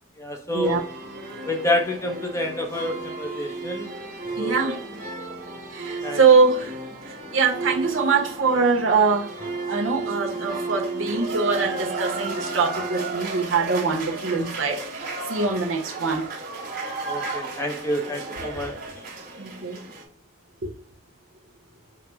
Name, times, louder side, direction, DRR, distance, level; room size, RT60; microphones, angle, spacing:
voice 1, 0.2-0.8 1.5-3.9 4.4-4.8 6.0-6.2 17.0-18.8, left 1 dB, 15° left, 0.6 m, -28 dB
sound 1, 0.6-20.0, right 3 dB, 45° right, 1.1 m, -33 dB
voice 2, 4.4-4.8 5.7-6.8 7.0-9.3 9.7-16.2 18.5-18.7 19.4-19.8 20.6-20.7, right 4 dB, 70° right, 0.9 m, -23 dB
4.9 x 2.0 x 4.4 m
head